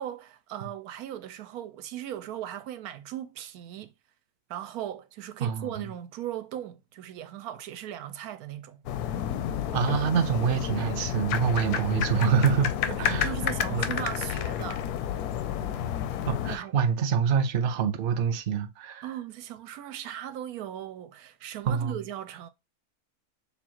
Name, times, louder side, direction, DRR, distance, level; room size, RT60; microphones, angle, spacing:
voice 1, 0.0-3.9 4.5-8.8 12.8-14.9 16.5-16.8 19.0-22.5, right 11 dB, 80° right, 1.1 m, -38 dB
voice 2, 5.4-5.9 9.7-12.7 13.0-13.3 13.7-13.8 16.3-19.1 21.7-22.0, right 7 dB, 55° right, 0.6 m, -26 dB
sound 1, 8.9-16.6, left 9 dB, 90° left, 1.1 m, -30 dB
6.9 x 2.4 x 2.9 m
omnidirectional pair, 1.6 m